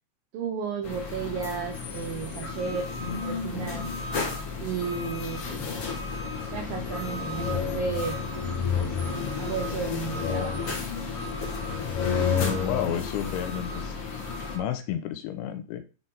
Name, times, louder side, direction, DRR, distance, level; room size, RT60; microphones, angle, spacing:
voice 1, 0.3-3.9 4.6-5.4 6.5-8.2 8.8-9.0 9.4-10.8, right 6 dB, 80° right, 3 dB, 2.0 m, -33 dB
sound 1, 0.8-14.6, left 5 dB, 55° left, 1.6 m, -31 dB
voice 2, 12.6-14.0 14.5-15.8, left 10 dB, 85° left, 9 dB, 3.1 m, -31 dB
10.5 x 4.1 x 3.8 m, 0.33 s
omnidirectional pair, 5.3 m